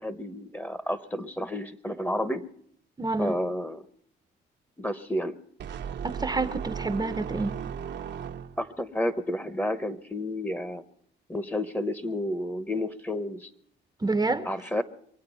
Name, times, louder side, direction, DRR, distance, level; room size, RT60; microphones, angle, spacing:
voice 1, 0.0-2.4 3.2-3.8 4.8-5.4 8.6-10.8 11.3-13.5 14.4-14.8, left 1 dB, 10° left, 13 dB, 1.1 m, -31 dB
voice 2, 3.0-3.3 6.0-7.6 14.0-14.5, right 3 dB, 20° right, 10 dB, 0.9 m, -28 dB
sound 1, 5.6-8.8, right 8 dB, 65° right, 1.0 m, -36 dB
24.5 x 8.7 x 5.6 m, 0.64 s
cardioid pair, 90°, 20 cm